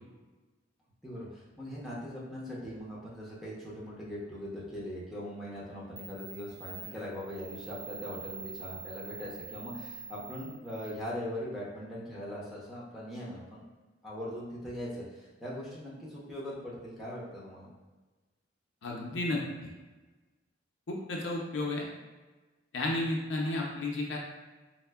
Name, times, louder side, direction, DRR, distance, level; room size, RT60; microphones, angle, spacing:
voice 1, 1.0-13.6 14.0-17.7, equal, ahead, -8 dB, 0.6 m, -40 dB
sound 1, 5.5-5.6 6.0-10.9, right 4 dB, 85° right, 1.3 m, -45 dB
voice 2, 18.8-19.7 20.9-21.8 22.7-24.2, left 2 dB, 65° left, -1 dB, 0.5 m, -32 dB
4.2 x 2.0 x 2.2 m, 1.3 s
head